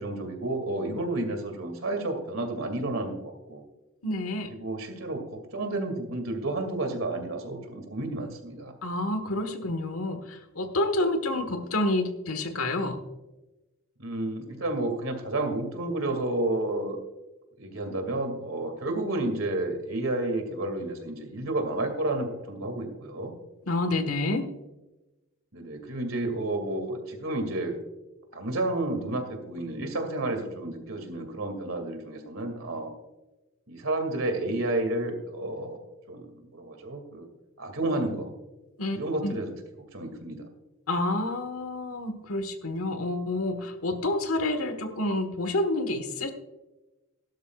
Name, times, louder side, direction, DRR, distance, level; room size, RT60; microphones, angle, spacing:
voice 1, 0.0-3.6 4.5-5.2 5.5-8.7 14.0-17.0 17.6-23.3 25.5-27.8 28.3-32.9 33.7-35.8 36.1-37.3 37.6-38.3 38.9-39.5 39.9-40.4, right 2 dB, 70° right, 5 dB, 2.3 m, -31 dB
voice 2, 4.0-4.5 8.8-13.0 23.7-24.5 38.8-39.0 39.2-39.3 40.9-46.3, left 2 dB, 80° left, 8 dB, 1.4 m, -28 dB
16.5 x 12.0 x 2.4 m, 1.0 s
head